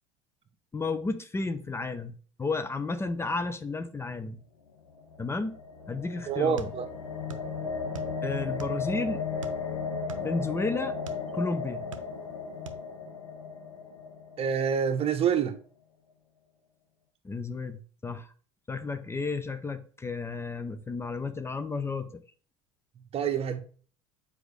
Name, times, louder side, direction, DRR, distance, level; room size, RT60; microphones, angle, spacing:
voice 1, 0.7-4.4 5.2-5.6 5.9-6.7 8.2-9.2 10.2-10.9 11.3-11.9 17.2-18.3 18.7-22.2, left 3 dB, 15° left, 0.6 m, -32 dB
sound 1, 4.9-15.1, left 4 dB, 85° left, 1.4 m, -35 dB
voice 2, 6.3-6.9 14.4-15.5 23.1-23.6, right 8 dB, 35° right, 0.9 m, -27 dB
sound 2, 6.6-7.5 7.8-8.9 9.4-11.3 11.7-12.4 12.7-12.8, right 5 dB, 85° right, 0.7 m, -43 dB
7.9 x 4.9 x 3.2 m
hypercardioid pair, 70°, 16 cm